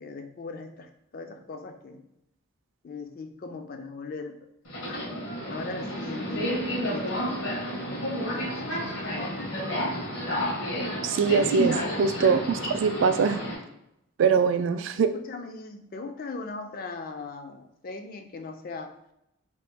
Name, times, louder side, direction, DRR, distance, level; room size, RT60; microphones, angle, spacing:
voice 1, 0.0-2.0 2.8-4.4 4.9-5.1 5.5-7.4 8.3-9.8 11.6-12.1 14.5-14.6 15.0-18.9, left 3 dB, 45° left, 7 dB, 0.4 m, -40 dB
Subway metro underground, 4.6-13.5, equal, 80° left, 1.2 m, -31 dB
voice 2, 11.0-13.4 14.2-15.1, right 5 dB, 70° right, 10 dB, 0.3 m, -23 dB
3.1 x 2.9 x 3.4 m, 0.81 s
head